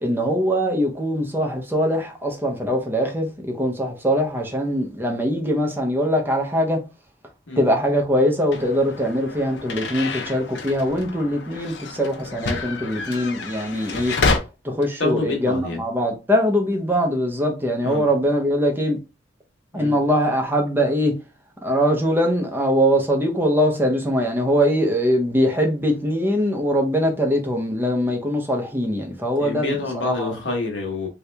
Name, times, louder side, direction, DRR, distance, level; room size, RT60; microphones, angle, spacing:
voice 1, 0.0-6.8 7.6-14.4 14.6-19.0 19.7-21.2 21.6-29.7 30.0-30.3, equal, 10° right, 0.6 m, -22 dB
sound 1, 8.5-14.4, left 3 dB, 65° left, 0.6 m, -28 dB
voice 2, 15.0-15.8 17.8-18.0 19.7-20.0 29.4-31.1, left 2 dB, 80° left, 1.2 m, -27 dB
3.1 x 2.8 x 3.3 m
head